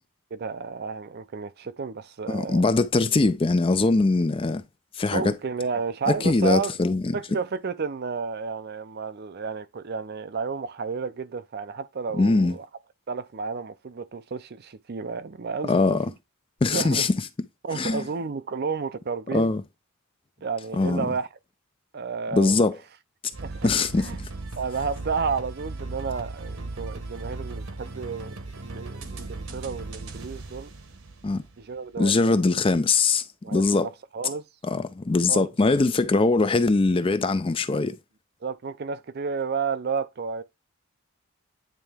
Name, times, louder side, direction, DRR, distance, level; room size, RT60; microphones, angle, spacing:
voice 1, 0.3-2.7 5.1-6.7 7.1-12.7 13.1-16.0 16.7-17.1 17.6-19.5 20.4-21.3 21.9-22.6 23.4-24.2 24.6-30.7 31.6-32.5 33.4-34.4 35.3-35.5 36.5-36.6 38.4-40.4, right 5 dB, 45° right, 0.5 m, -31 dB
voice 2, 2.3-4.6 5.0-5.3 6.2-7.1 12.1-12.5 15.7-16.1 16.6-17.1 17.7-18.0 19.3-19.6 20.8-21.1 22.3-22.8 23.6-24.3 31.2-31.4 32.0-33.2 33.5-33.9 34.6-38.0, left 3 dB, 25° left, 0.4 m, -22 dB
sound 1, 23.3-31.8, right 2 dB, 70° right, 1.1 m, -37 dB
9.0 x 3.3 x 3.4 m
head